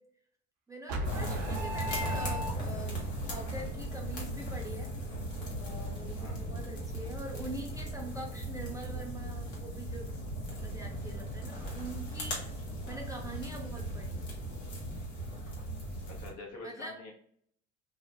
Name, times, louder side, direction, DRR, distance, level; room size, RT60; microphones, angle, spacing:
voice 1, 0.7-4.9 5.6-10.1 10.5-12.5 12.9-14.3 16.6-17.0, right 1 dB, 10° right, 0 dB, 0.6 m, -44 dB
sound 1, 0.9-3.0, equal, 50° right, 0.5 m, -37 dB
sound 2, 1.0-16.3, right 1 dB, 80° left, 1.1 m, -38 dB
sound 3, 1.4-15.0, left 2 dB, 30° left, 0.5 m, -49 dB
voice 2, 16.1-17.1, left 2 dB, 50° left, 1 dB, 0.9 m, -46 dB
2.5 x 2.1 x 2.9 m, 0.63 s
hypercardioid pair, 70°, 32 cm